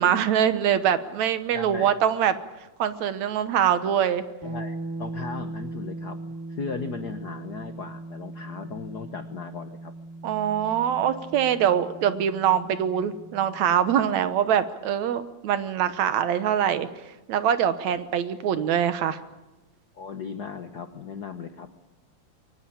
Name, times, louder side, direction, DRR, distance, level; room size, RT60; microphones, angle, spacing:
voice 1, 0.0-2.3 2.8-4.2 10.2-16.9 17.3-19.2, right 9 dB, 70° right, 12 dB, 2.3 m, -23 dB
voice 2, 1.5-2.0 4.4-6.2 6.6-9.9 20.0-21.8, left 5 dB, 75° left, 9 dB, 0.9 m, -37 dB
sound 1, 4.4-14.2, right 2 dB, 15° right, 0.6 m, -39 dB
23.0 x 19.0 x 8.7 m, 1.1 s
omnidirectional pair, 3.4 m